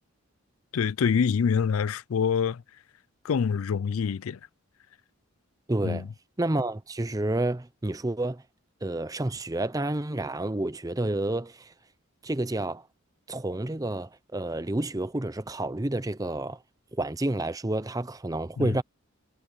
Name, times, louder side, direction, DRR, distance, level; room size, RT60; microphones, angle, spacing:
voice 1, 0.7-2.6 3.2-4.4 5.8-6.1 18.6-18.8, left 6 dB, 75° left, 0.4 m, -26 dB
voice 2, 5.7-6.1 6.4-8.4 8.8-11.7 12.2-12.8 13.3-16.6 16.9-18.8, right 1 dB, 15° right, 0.6 m, -29 dB
head